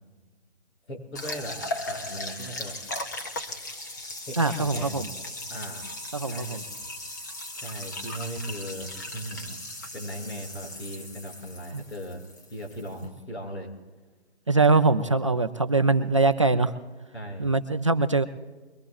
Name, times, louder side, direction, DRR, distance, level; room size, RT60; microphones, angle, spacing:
voice 1, 0.9-2.8 4.3-5.1 5.5-5.9 6.2-6.6 7.6-8.9 9.1-9.6 9.9-12.2 12.5-13.7 17.1-17.5, equal, 80° left, 0 dB, 6.4 m, -38 dB
sound 1, 1.2-13.1, left 2 dB, 15° left, 0.6 m, -37 dB
voice 2, 4.4-5.1 6.1-6.6 11.7-11.8 14.5-16.7 17.4-18.2, right 3 dB, 30° right, 7 dB, 0.4 m, -22 dB
22.5 x 22.5 x 2.4 m, 1.3 s
hypercardioid pair, 160°, 33 cm